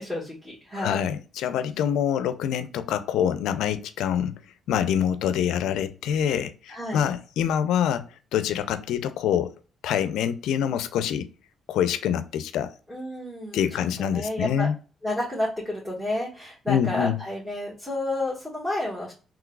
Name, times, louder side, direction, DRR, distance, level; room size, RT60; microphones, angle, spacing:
voice 1, 0.0-1.0 6.7-7.0 12.9-14.7 15.0-19.1, left 1 dB, 5° right, 1.5 m, -31 dB
voice 2, 0.7-4.3 4.7-9.5 9.8-11.3 11.7-12.7 13.5-14.8 16.7-17.2, left 9 dB, 85° left, 0.4 m, -25 dB
3.7 x 3.0 x 2.3 m
cardioid pair, 90°, 0 cm